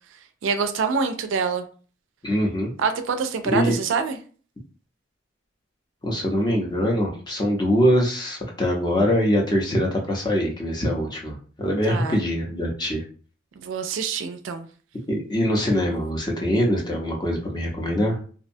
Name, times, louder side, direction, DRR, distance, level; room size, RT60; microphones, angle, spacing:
voice 1, 0.4-1.6 2.8-4.2 11.9-12.2 13.6-14.7, right 5 dB, 70° right, 0.3 m, -25 dB
voice 2, 2.2-2.7 3.5-3.8 6.0-13.0 15.1-18.2, equal, 20° left, 0.6 m, -23 dB
2.6 x 2.1 x 2.6 m
head